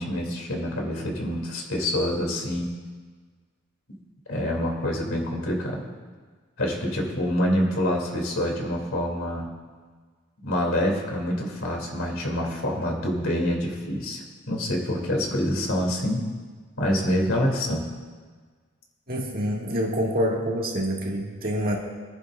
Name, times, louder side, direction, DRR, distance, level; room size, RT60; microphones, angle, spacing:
voice 1, 0.0-2.7 4.3-5.9 6.6-9.5 10.4-16.2 16.8-17.8, left 1 dB, 80° left, 0 dB, 2.7 m, -26 dB
voice 2, 19.1-21.8, equal, 45° right, -2 dB, 1.9 m, -26 dB
23.5 x 10.5 x 2.5 m, 1.5 s
head